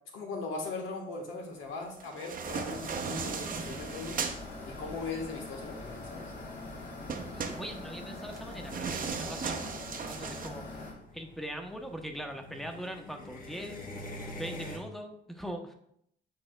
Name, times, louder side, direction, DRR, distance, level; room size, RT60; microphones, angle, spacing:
voice 1, 0.1-4.2 4.7-6.3, left 3 dB, 85° left, 2 dB, 1.3 m, -39 dB
sound 1, 2.0-4.4 7.1-10.5, right 6 dB, 45° right, 0.7 m, -37 dB
sound 2, 2.4-10.9, left 2 dB, 70° left, 2.3 m, -43 dB
sound 3, 4.2-14.8, left 1 dB, 45° left, 1.3 m, -48 dB
voice 2, 7.3-9.7 9.9-10.8 11.1-13.8 14.4-15.7, equal, ahead, 4 dB, 0.8 m, -41 dB
8.6 x 4.9 x 2.2 m, 0.72 s
cardioid pair, 90°, 20 cm